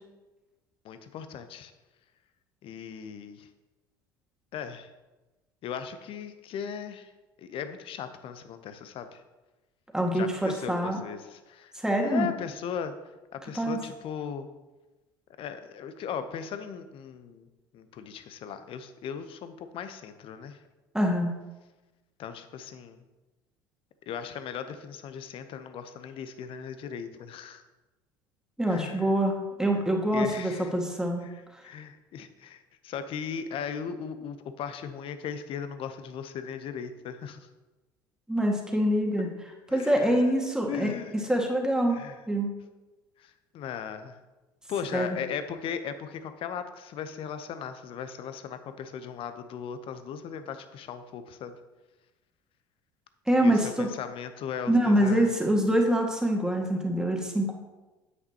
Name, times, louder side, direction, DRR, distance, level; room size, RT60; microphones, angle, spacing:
voice 1, 0.8-1.7 2.6-3.5 4.5-4.9 5.6-7.1 7.4-9.2 10.1-12.9 13.3-14.5 15.4-17.5 17.7-20.6 22.2-23.0 24.1-27.6 28.7-29.1 30.1-30.8 31.2-37.5 39.7-40.3 40.7-41.2 41.9-42.2 43.2-44.2 44.7-51.5 53.4-55.3, left 7 dB, 50° left, 10 dB, 0.8 m, -38 dB
voice 2, 9.9-11.0 11.7-12.3 13.6-13.8 20.9-21.4 28.6-31.2 38.3-39.3 39.7-40.9 41.3-42.0 42.3-42.5 44.9-45.2 53.3-53.9 54.7-57.5, right 1 dB, 5° right, 0 dB, 1.8 m, -25 dB
9.5 x 8.1 x 2.9 m, 1.1 s
hypercardioid pair, 65°, 12 cm